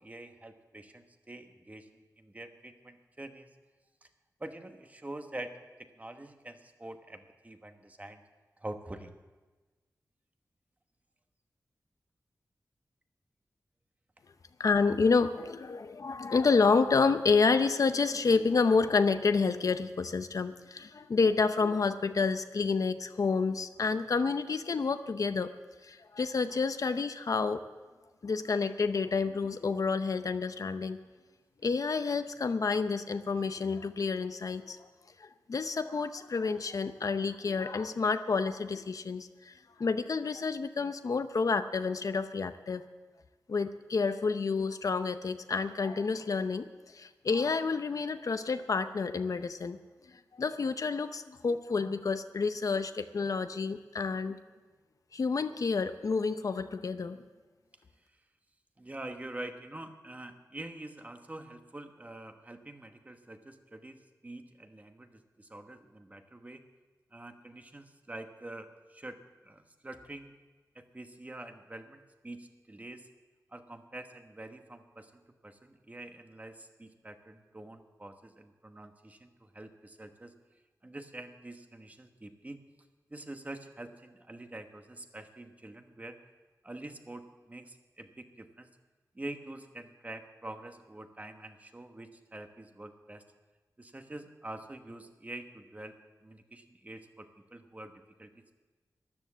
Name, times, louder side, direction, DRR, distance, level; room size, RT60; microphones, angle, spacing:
voice 1, 0.0-1.9 2.2-3.5 4.4-5.5 5.8-8.2 8.6-9.1 58.8-66.6 67.1-69.2 69.4-70.3 70.7-73.1 73.5-80.3 80.8-82.6 83.1-86.2 86.6-88.7 89.1-93.2 93.8-95.9 96.2-97.9 98.2-98.3, right 1 dB, 25° right, 6 dB, 1.1 m, -46 dB
voice 2, 14.6-25.5 25.8-27.6 28.2-31.0 31.6-34.8 35.2-39.5 39.8-42.8 43.5-46.7 46.9-49.8 50.4-54.4 55.1-57.2, left 4 dB, 60° left, 10 dB, 0.6 m, -29 dB
13.5 x 10.5 x 7.4 m, 1.3 s
wide cardioid pair, 90°, 7 cm